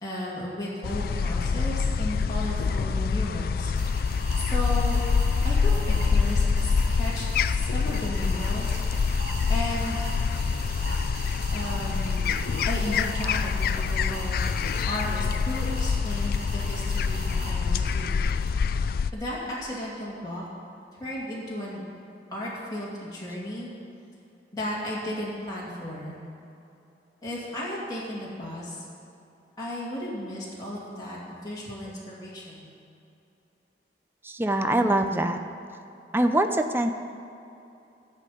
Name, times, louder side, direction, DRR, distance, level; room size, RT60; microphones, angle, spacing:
voice 1, 0.0-3.7 4.4-5.0 5.4-8.8 9.5-10.1 11.5-12.3 12.6-18.1 19.1-20.4 21.0-21.8 22.3-23.7 24.5-26.2 27.2-28.8 29.6-32.7, left 1 dB, 20° left, -8 dB, 2.3 m, -34 dB
sound 1, 0.8-19.1, left 5 dB, 55° left, 0.3 m, -26 dB
sound 2, 3.7-18.5, right 2 dB, 70° right, 2.9 m, -41 dB
voice 2, 34.2-35.4 36.1-36.9, right 1 dB, 15° right, 6 dB, 0.5 m, -23 dB
13.5 x 5.8 x 8.5 m, 2.7 s
head